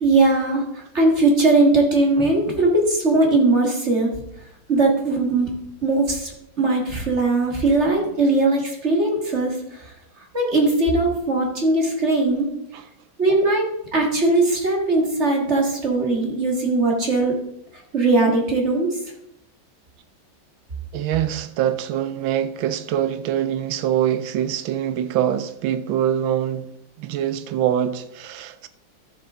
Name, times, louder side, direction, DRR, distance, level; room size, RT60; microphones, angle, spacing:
voice 1, 0.0-4.1 4.7-5.5 5.8-6.3 6.6-9.9 10.3-12.5 13.2-17.4 17.9-19.0, right 2 dB, 35° right, 2.0 m, -19 dB
voice 2, 20.9-26.7 27.0-28.7, right 10 dB, 85° right, 1.5 m, -24 dB
12.5 x 6.9 x 3.7 m
omnidirectional pair, 2.1 m